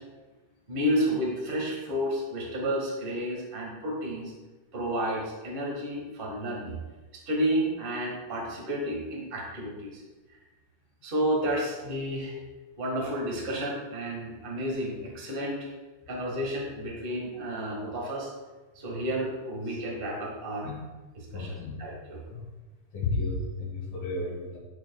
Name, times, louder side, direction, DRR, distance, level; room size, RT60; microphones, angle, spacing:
voice 1, 0.7-4.3 4.7-6.8 7.3-10.0 11.0-12.4 12.8-15.6 16.1-18.3 18.7-20.7 21.1-22.2, equal, 35° right, -2 dB, 0.8 m, -31 dB
voice 2, 21.3-21.7 22.3-22.4 22.9-24.6, left 3 dB, 85° left, -8 dB, 3.1 m, -32 dB
12.0 x 4.5 x 2.2 m, 1.2 s
omnidirectional pair, 3.5 m